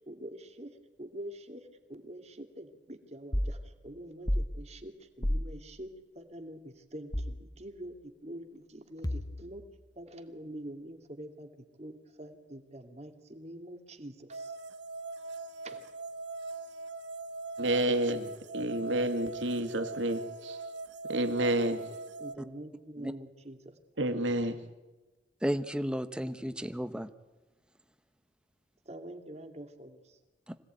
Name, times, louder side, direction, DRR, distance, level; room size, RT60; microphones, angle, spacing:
voice 1, 0.1-0.7 1.0-8.0 8.2-9.6 10.0-11.5 11.8-14.5 15.6-15.8 22.2-23.7 28.9-30.0, right 1 dB, 35° right, 6 dB, 2.3 m, -45 dB
sound 1, 3.3-3.6 4.3-4.5 5.2-5.5 7.1-7.4 9.0-9.6, equal, 20° left, 1.2 m, -31 dB
sound 2, 14.3-22.4, right 3 dB, 70° right, 1.0 m, -40 dB
voice 2, 17.6-20.6 21.1-21.8 24.0-24.6, right 1 dB, 85° right, 9 dB, 2.2 m, -30 dB
voice 3, 25.4-27.1 30.5-30.6, equal, 5° right, 11 dB, 1.0 m, -33 dB
25.5 x 17.5 x 9.3 m, 1.1 s
head